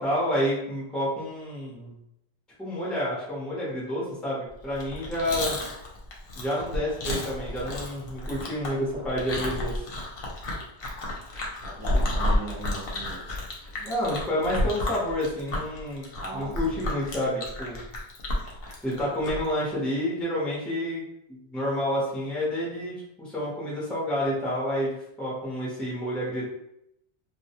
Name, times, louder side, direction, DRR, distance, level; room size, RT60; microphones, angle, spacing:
voice 1, 0.0-2.0 2.6-5.6 6.3-9.9 11.9-12.1 13.7-17.8 18.8-21.0 21.3-26.5, equal, ahead, -6 dB, 0.7 m, -29 dB
Chewing mastication, 4.7-19.5, left 1 dB, 65° left, 0.8 m, -31 dB
voice 2, 8.6-9.1 11.6-13.2 16.2-16.9, right 3 dB, 35° right, -3 dB, 0.6 m, -40 dB
2.2 x 2.2 x 2.8 m, 0.79 s
omnidirectional pair, 1.1 m